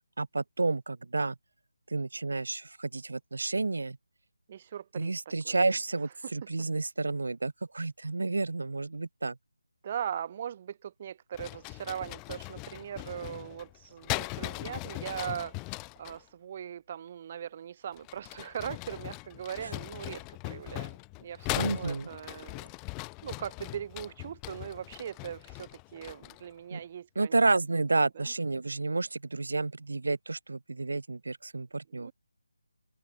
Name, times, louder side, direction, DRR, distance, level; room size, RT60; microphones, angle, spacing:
voice 1, 0.2-1.4 1.9-4.0 5.0-9.4 19.6-19.7 21.6-22.1 26.7-26.8 27.2-32.1, right 3 dB, 75° right, 3.8 m, -30 dB
voice 2, 4.5-5.1 5.4-5.7 9.8-15.6 16.0-22.7 23.2-27.4 28.2-28.3 31.9-32.1, right 9 dB, 25° right, 2.8 m, -40 dB
sound 1, 11.3-16.2 17.9-26.5, left 32 dB, 10° left, 1.6 m, -39 dB
figure-of-eight pair, 170°, 0 cm